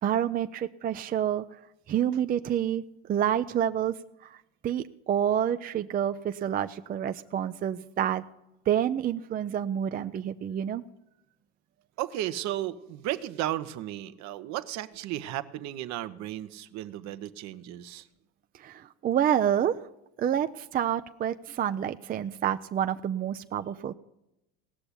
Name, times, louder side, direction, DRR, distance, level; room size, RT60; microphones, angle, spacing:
voice 1, 0.0-1.4 1.9-2.8 3.1-3.9 4.2-4.4 4.6-8.2 8.7-10.8 18.6-19.8 20.2-23.9, right 10 dB, 30° right, 9 dB, 0.5 m, -28 dB
voice 2, 12.0-18.1, right 13 dB, 60° right, 12 dB, 1.0 m, -34 dB
17.5 x 6.8 x 10.0 m, 0.88 s
supercardioid pair, 100°, 32 cm